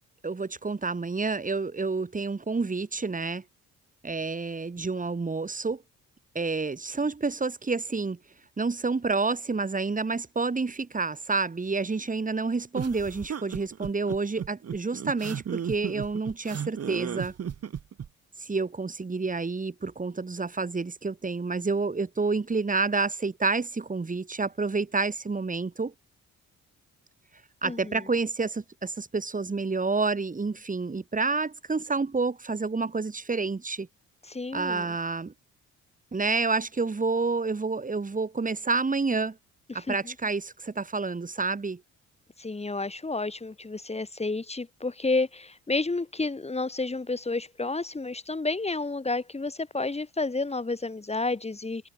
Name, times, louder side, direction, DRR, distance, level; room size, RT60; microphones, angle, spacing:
voice 1, 0.2-3.4 4.0-5.8 6.3-8.2 8.6-17.3 18.4-25.9 27.6-33.9 34.5-35.3 36.1-39.4 39.7-41.8, right 4 dB, 25° right, 6.1 m, -29 dB
Man sobbing crying or whimpering, 12.7-18.1, right 8 dB, 55° right, 6.9 m, -34 dB
voice 2, 27.6-28.0 34.2-34.9 39.7-40.1 42.4-51.9, left 3 dB, 20° left, 5.9 m, -31 dB
cardioid pair, 90°, 30 cm